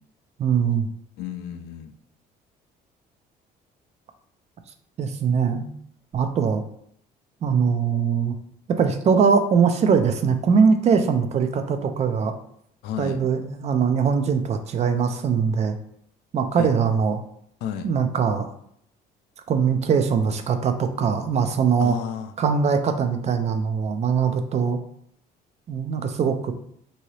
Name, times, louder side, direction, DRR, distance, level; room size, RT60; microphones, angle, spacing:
voice 1, 0.4-0.9 5.0-5.7 6.1-6.6 7.4-8.3 8.7-12.3 13.0-15.8 16.3-17.2 17.8-18.5 19.5-22.0 22.4-24.8 25.7-26.5, right 6 dB, 40° right, 8 dB, 0.4 m, -21 dB
voice 2, 1.2-1.9 12.8-13.2 16.6-16.7 17.6-17.9 21.8-22.3, left 9 dB, 80° left, 7 dB, 0.4 m, -32 dB
2.7 x 2.7 x 3.1 m, 0.67 s
cardioid pair, 110°, 17 cm